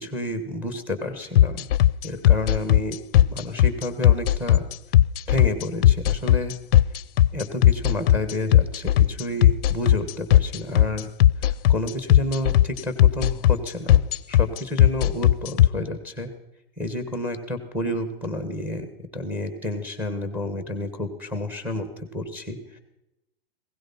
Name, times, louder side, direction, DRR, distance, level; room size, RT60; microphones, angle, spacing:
voice 1, 0.0-1.7 2.0-4.6 5.3-6.5 7.3-11.1 11.7-16.3 16.8-18.9 19.1-22.6, left 1 dB, 5° right, 9 dB, 1.7 m, -30 dB
sound 1, 1.4-15.7, left 12 dB, 70° left, 0.5 m, -16 dB
16.5 x 15.5 x 4.3 m, 0.91 s
hypercardioid pair, 140°, 30 cm